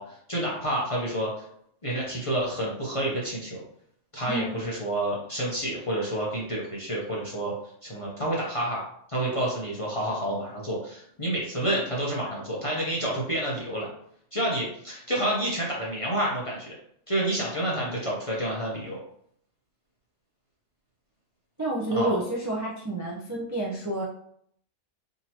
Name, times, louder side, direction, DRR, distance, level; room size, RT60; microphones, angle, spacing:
voice 1, 0.0-1.5 1.8-3.6 4.1-7.5 7.8-8.8 9.1-13.9 14.3-16.7 17.1-19.0 21.9-22.1, right 1 dB, 30° left, -5 dB, 0.7 m, -29 dB
voice 2, 4.3-4.6 21.6-24.0, right 1 dB, 20° right, -5 dB, 0.5 m, -29 dB
3.7 x 2.8 x 2.8 m, 0.68 s
omnidirectional pair, 1.4 m